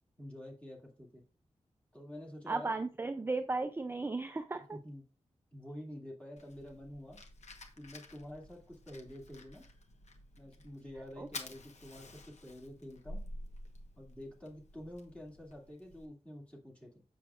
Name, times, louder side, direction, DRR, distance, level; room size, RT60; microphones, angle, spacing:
voice 1, 0.2-1.2 1.9-2.7 4.7-5.1 5.5-7.2 7.8-9.7 10.4-13.2 14.0-17.0, left 1 dB, 10° left, 2.3 m, -48 dB
voice 2, 2.5-4.8 11.2-11.3, right 3 dB, 20° right, 0.4 m, -35 dB
Fire, 6.4-16.0, left 1 dB, 75° left, 1.1 m, -50 dB
7.3 x 6.9 x 2.4 m
wide cardioid pair, 140°, 12 cm